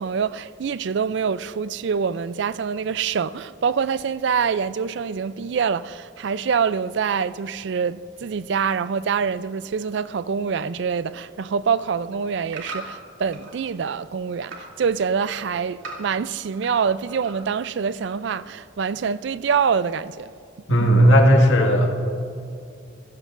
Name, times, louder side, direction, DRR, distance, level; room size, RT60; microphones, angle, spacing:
voice 1, 0.0-20.3, right 6 dB, 65° right, 0.4 m, -25 dB
sound 1, 12.0-13.6 14.0-14.7 15.1-16.8 17.1-17.6 18.1-18.2, right 2 dB, 85° right, 2.7 m, -39 dB
voice 2, 20.7-21.9, equal, 75° left, 1.8 m, -15 dB
27.0 x 15.0 x 2.5 m
head